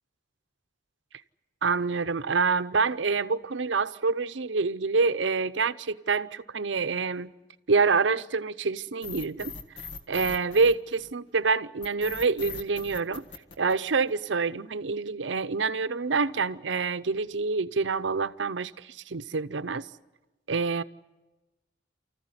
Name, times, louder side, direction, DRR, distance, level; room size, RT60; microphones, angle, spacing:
voice 1, 1.6-7.3 7.7-9.5 10.1-13.2 13.6-19.9 20.5-20.8, right 4 dB, 75° right, 0.7 m, -27 dB
sound 1, 9.0-11.3 11.8-14.3, left 6 dB, 75° left, 1.7 m, -40 dB
29.0 x 14.5 x 9.7 m
head